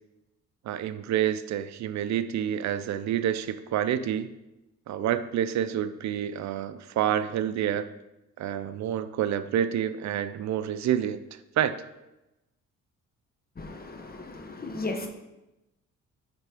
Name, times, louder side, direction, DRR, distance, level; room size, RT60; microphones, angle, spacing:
voice 1, 0.6-4.3 4.9-7.9 8.4-11.2 11.6-11.7, right 10 dB, 65° right, 12 dB, 0.5 m, -28 dB
voice 2, 13.6-15.1, left 2 dB, 30° left, 4 dB, 1.2 m, -35 dB
9.0 x 3.4 x 4.9 m, 0.96 s
cardioid pair, 90°, 30 cm